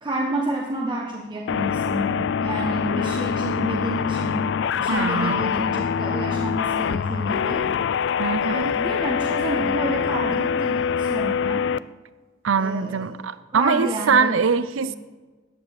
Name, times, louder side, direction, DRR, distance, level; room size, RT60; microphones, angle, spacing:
voice 1, 0.0-7.7 8.4-11.7 12.6-13.2 13.5-14.4 14.8-14.9, right 1 dB, 25° right, -1 dB, 1.2 m, -29 dB
sound 1, 1.5-11.8, left 7 dB, 60° left, 0.3 m, -24 dB
voice 2, 4.9-5.5 8.2-8.7 12.4-15.0, right 5 dB, 75° right, 14 dB, 0.5 m, -23 dB
14.0 x 9.8 x 5.0 m, 1.3 s
head